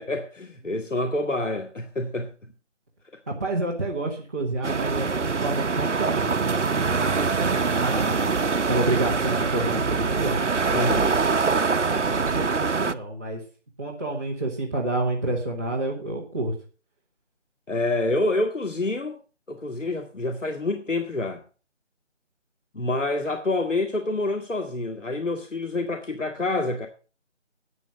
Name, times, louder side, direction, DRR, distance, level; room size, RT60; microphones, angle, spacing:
voice 1, 0.0-2.3 10.7-11.2 17.7-19.2 19.5-21.4 22.7-26.9, left 2 dB, 85° left, 2.1 m, -27 dB
voice 2, 3.3-8.3 8.6-10.4 12.1-13.4 13.8-16.5, right 2 dB, 15° right, 1.5 m, -29 dB
sound 1, 4.6-12.9, right 4 dB, 70° right, 1.0 m, -24 dB
12.0 x 9.2 x 6.5 m
figure-of-eight pair, 170°, 36 cm